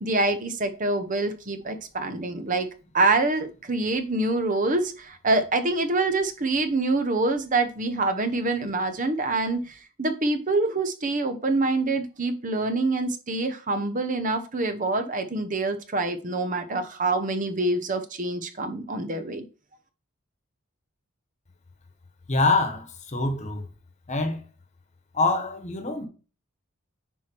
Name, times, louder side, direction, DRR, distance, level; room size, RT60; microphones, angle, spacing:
voice 1, 0.0-2.7 2.9-19.4, right 2 dB, 40° right, 0.9 m, -26 dB
voice 2, 22.3-23.7 24.1-24.5 25.1-26.1, left 3 dB, 35° left, 1.3 m, -25 dB
10.0 x 4.5 x 4.5 m
head